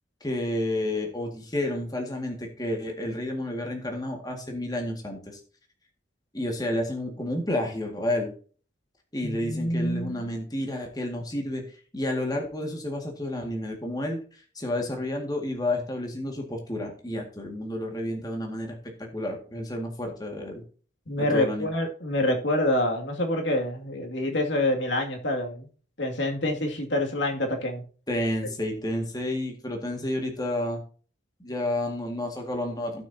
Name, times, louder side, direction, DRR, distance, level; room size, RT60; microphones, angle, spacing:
voice 1, 0.2-5.4 6.3-8.3 9.1-20.6 21.2-21.7 28.1-30.8 31.4-33.1, left 1 dB, 20° left, 2 dB, 2.0 m, -30 dB
voice 2, 9.2-10.3 21.1-25.7 26.0-27.8, left 1 dB, 75° left, 2 dB, 2.4 m, -27 dB
16.5 x 6.4 x 2.8 m, 0.41 s
head